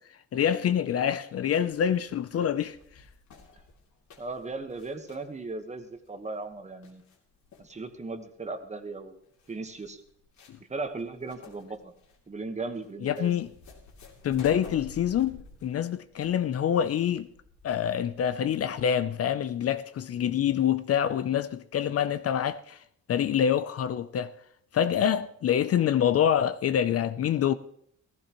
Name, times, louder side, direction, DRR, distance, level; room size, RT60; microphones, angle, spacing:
voice 1, 0.3-2.8 10.5-10.6 13.0-13.5 14.2-17.3 17.6-22.8 23.1-24.3 24.7-27.5, left 9 dB, 55° left, 0.5 m, -26 dB
sound 1, 1.7-18.5, left 3 dB, 75° left, 2.9 m, -52 dB
voice 2, 4.2-7.0 7.6-9.2 9.5-10.0 10.7-11.9 12.3-13.4, right 3 dB, 25° right, 1.2 m, -37 dB
17.0 x 15.0 x 3.0 m
cardioid pair, 135°, 29 cm